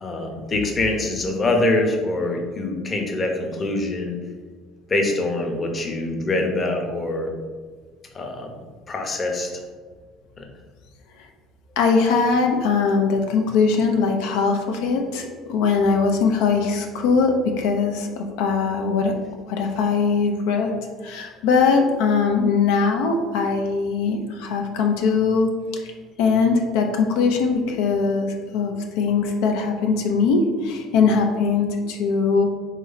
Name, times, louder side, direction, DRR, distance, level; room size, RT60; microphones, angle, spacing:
voice 1, 0.0-4.2 4.9-7.3 8.1-8.5 8.9-9.5 10.4-10.5, left 2 dB, 25° left, 2 dB, 0.8 m, -24 dB
voice 2, 11.8-19.1 19.5-20.7 21.0-25.9 26.2-32.5, left 5 dB, 85° left, 3 dB, 0.5 m, -21 dB
4.0 x 3.2 x 3.9 m, 1.5 s
cardioid pair, 125°, 0 cm